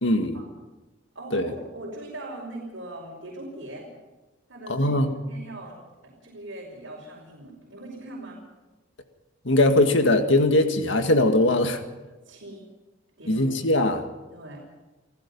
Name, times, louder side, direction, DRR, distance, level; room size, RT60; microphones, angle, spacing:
voice 1, 0.0-0.4 1.3-1.5 4.7-5.1 9.5-11.8 13.3-14.0, left 1 dB, 70° left, 6 dB, 2.0 m, -21 dB
voice 2, 1.2-3.9 4.5-4.9 5.3-5.8 6.0-8.4 12.3-12.7 13.2-13.6 14.3-14.6, right 1 dB, 75° right, -4 dB, 5.3 m, -40 dB
29.0 x 16.0 x 5.6 m, 1.1 s
head